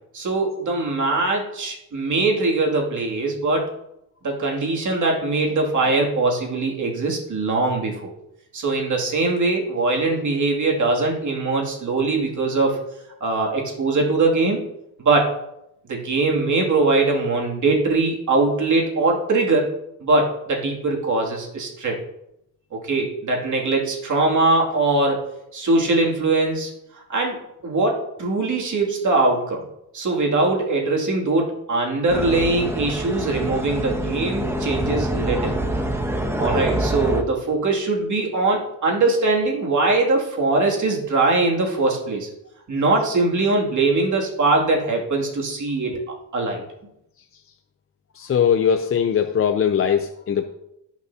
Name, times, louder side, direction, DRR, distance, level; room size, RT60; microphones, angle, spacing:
voice 1, 0.1-3.7 4.2-8.1 8.5-12.8 13.2-14.6 15.0-15.3 15.9-19.7 20.0-22.0 22.7-25.2 25.5-26.7 27.1-27.4 27.6-29.6 29.9-35.5 36.4-42.3 42.7-46.0 46.3-46.6, right 3 dB, 45° right, -1 dB, 2.5 m, -21 dB
sound 1, 32.1-37.2, right 1 dB, 5° right, 1.0 m, -25 dB
voice 2, 48.1-50.5, left 8 dB, 35° left, 6 dB, 0.5 m, -20 dB
17.5 x 6.0 x 2.8 m, 0.84 s
cardioid pair, 130°, 40 cm